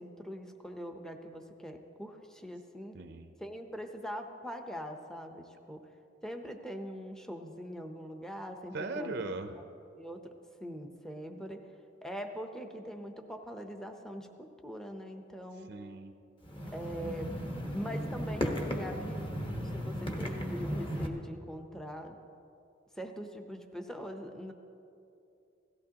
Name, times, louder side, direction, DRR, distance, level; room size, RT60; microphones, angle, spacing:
voice 1, 0.0-2.9 3.4-5.8 6.2-9.1 10.0-10.2 10.6-11.6 12.0-15.7 16.7-17.3 17.7-22.1 23.0-24.5, equal, 5° left, 4 dB, 0.7 m, -42 dB
voice 2, 2.9-3.3 8.7-9.6 15.7-16.1, right 3 dB, 60° right, 8 dB, 0.6 m, -38 dB
sound 1, 16.4-21.1, equal, 25° left, 1.1 m, -35 dB
17.0 x 14.5 x 2.9 m, 2.6 s
head